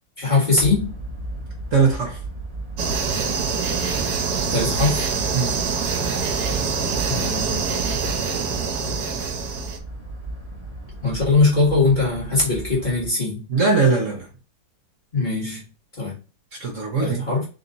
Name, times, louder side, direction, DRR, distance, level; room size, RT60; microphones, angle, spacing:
voice 1, 0.2-0.9 4.5-5.0 7.1-7.8 11.0-13.5 15.1-15.6 16.0-16.2 17.0-17.5, left 3 dB, 25° left, 1.8 m, -21 dB
sound 1, 0.6-13.1, right 2 dB, 20° right, 1.2 m, -36 dB
voice 2, 1.7-2.2 5.3-5.6 13.5-14.3 16.6-17.2, right 4 dB, 50° right, 1.3 m, -20 dB
sound 2, 2.8-9.8, right 5 dB, 70° right, 1.4 m, -25 dB
3.7 x 2.9 x 3.9 m
omnidirectional pair, 1.9 m